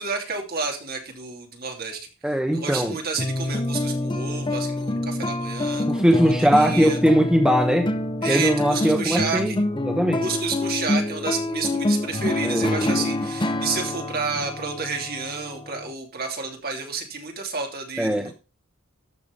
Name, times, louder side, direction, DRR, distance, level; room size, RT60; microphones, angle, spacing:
voice 1, 0.0-7.0 8.2-9.6 10.2-18.3, right 4 dB, 45° right, 3 dB, 2.8 m, -30 dB
voice 2, 2.2-2.9 5.9-7.9 8.3-9.5 9.8-10.3 12.4-13.0 18.0-18.3, equal, 5° right, 3 dB, 1.2 m, -20 dB
sound 1, 3.2-15.9, left 1 dB, 20° left, 0.7 m, -27 dB
14.0 x 6.1 x 5.3 m, 0.32 s
head